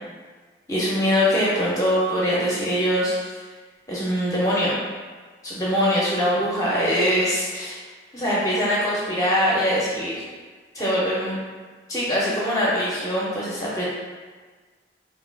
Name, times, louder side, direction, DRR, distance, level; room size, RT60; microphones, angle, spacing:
voice 1, 0.7-3.3 3.9-4.8 5.4-7.8 8.1-10.1 10.7-11.4 11.9-13.8, equal, 20° left, -7 dB, 0.5 m, -22 dB
2.6 x 2.2 x 3.3 m, 1.5 s
head